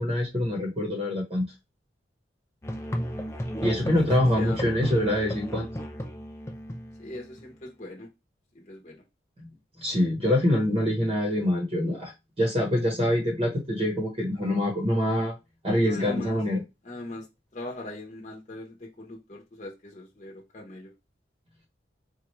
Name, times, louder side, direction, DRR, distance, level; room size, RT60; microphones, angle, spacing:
voice 1, 0.0-1.5 3.6-5.7 9.8-12.1 12.4-15.3 15.6-16.6, left 1 dB, 30° right, 1.0 m, -25 dB
Musical instrument, 2.6-7.4, equal, 15° left, 0.4 m, -33 dB
voice 2, 4.0-4.8 7.0-8.1 8.5-9.0 15.8-16.4 16.8-17.3 17.5-20.9, left 2 dB, 40° left, 0.9 m, -40 dB
4.2 x 2.4 x 3.1 m
head